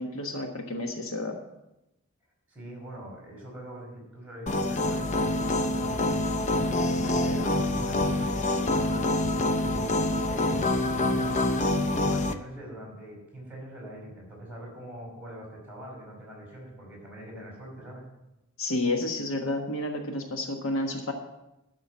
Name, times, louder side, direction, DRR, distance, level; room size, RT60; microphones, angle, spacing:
voice 1, 0.0-1.4 18.6-21.1, left 2 dB, 70° left, 3 dB, 1.4 m, -30 dB
voice 2, 2.5-6.4 6.8-9.1 9.6-11.4 11.9-18.1, right 1 dB, 5° right, -2 dB, 5.0 m, -43 dB
sound 1, 4.5-12.3, left 2 dB, 35° left, 0.5 m, -26 dB
12.0 x 6.0 x 7.0 m, 0.90 s
head